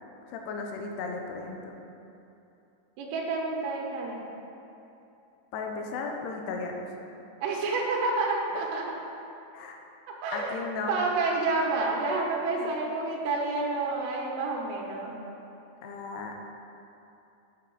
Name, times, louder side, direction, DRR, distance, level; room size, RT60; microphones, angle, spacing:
voice 1, 0.3-1.8 5.5-6.9 8.5-8.7 9.5-9.8 10.3-10.9 12.6-12.7 15.8-16.5, left 4 dB, 80° left, 2 dB, 2.7 m, -35 dB
voice 2, 3.0-4.3 7.4-8.9 10.1-10.6 10.9-15.1, right 3 dB, 90° right, -1 dB, 3.2 m, -29 dB
8.9 x 7.6 x 3.9 m, 2.8 s
omnidirectional pair, 4.9 m